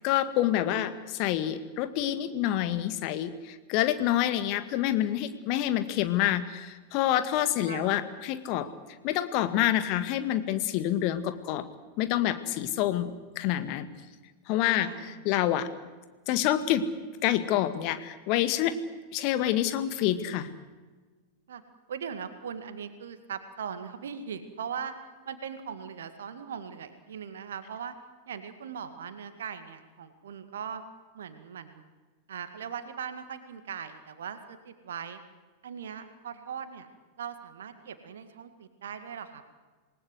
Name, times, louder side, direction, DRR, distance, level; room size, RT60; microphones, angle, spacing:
voice 1, 0.0-8.7 9.0-11.7 12.0-13.9 14.5-15.7 16.3-16.9 17.2-20.5, left 12 dB, 45° left, 11 dB, 1.8 m, -27 dB
voice 2, 7.6-8.0 14.8-15.2 21.5-21.6 21.9-24.9 25.3-28.0 28.3-30.8 31.1-31.8 32.3-35.2 35.6-36.9 37.2-39.4, right 7 dB, 65° right, 10 dB, 1.9 m, -39 dB
27.0 x 19.5 x 8.0 m, 1.3 s
figure-of-eight pair, 90°, 0 cm